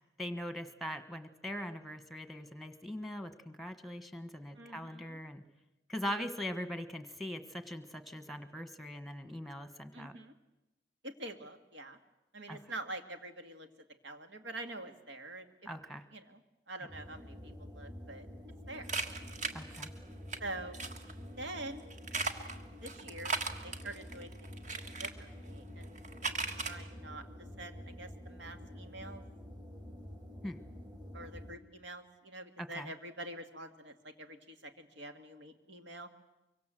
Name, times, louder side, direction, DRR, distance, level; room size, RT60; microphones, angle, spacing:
voice 1, 0.2-5.4 5.9-10.2 12.5-12.7 15.6-16.0 19.5-19.9 30.4-30.6 32.6-32.9, left 1 dB, ahead, 10 dB, 1.4 m, -41 dB
voice 2, 4.6-5.2 9.9-10.3 11.0-12.0 12.3-13.7 14.0-15.5 16.1-16.4 16.7-18.3 18.7-18.9 20.4-20.8 21.4-21.8 22.8-23.3 23.6-27.2 27.6-29.2 31.1-36.1, right 2 dB, 85° right, 7 dB, 2.1 m, -46 dB
sound 1, 16.9-31.6, left 1 dB, 25° right, 3.1 m, -48 dB
sound 2, 18.9-20.4 20.7-21.1 21.9-25.1 25.8-26.7, right 4 dB, 45° right, 1.6 m, -37 dB
24.5 x 24.0 x 7.7 m, 0.97 s
head